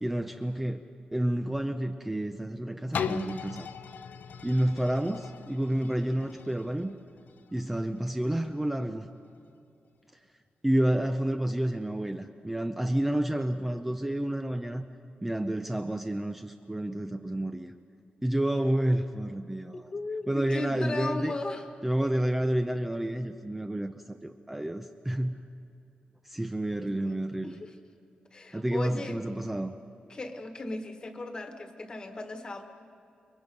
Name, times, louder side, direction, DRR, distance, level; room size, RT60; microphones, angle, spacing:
voice 1, 0.0-0.8 1.1-3.7 4.4-7.0 7.5-9.1 10.6-14.8 15.2-17.7 18.2-19.9 20.3-21.3 21.8-25.4 26.2-27.6 28.5-29.7, right 1 dB, 5° right, 6 dB, 0.6 m, -29 dB
sound 1, 2.9-8.7 9.2-9.3, left 7 dB, 75° left, 0.7 m, -39 dB
voice 2, 18.6-19.0 19.7-21.7 26.8-27.2 27.4-27.7 28.3-29.4 30.1-32.6, left 2 dB, 30° left, 6 dB, 1.5 m, -37 dB
29.0 x 22.5 x 5.3 m, 2.6 s
wide cardioid pair, 180°, 3 cm